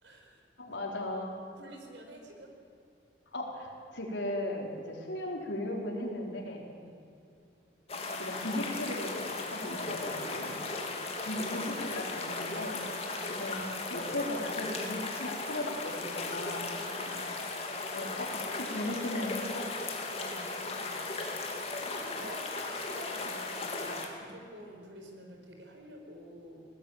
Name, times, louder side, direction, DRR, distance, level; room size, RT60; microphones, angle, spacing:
voice 1, 0.0-0.4 1.6-2.5 6.8-7.1 10.5-11.1 13.1-13.4 16.7-17.5 20.1-21.3 22.0-26.7, equal, 90° right, 3 dB, 4.5 m, -50 dB
voice 2, 0.6-1.3 3.3-6.7 8.1-10.6 11.2-13.6 13.9-16.7 17.9-19.6 24.2-24.3, left 1 dB, 85° left, 0 dB, 4.5 m, -37 dB
sound 1, 7.9-24.1, left 3 dB, 35° left, 2.5 m, -37 dB
20.0 x 17.5 x 9.0 m, 2.5 s
head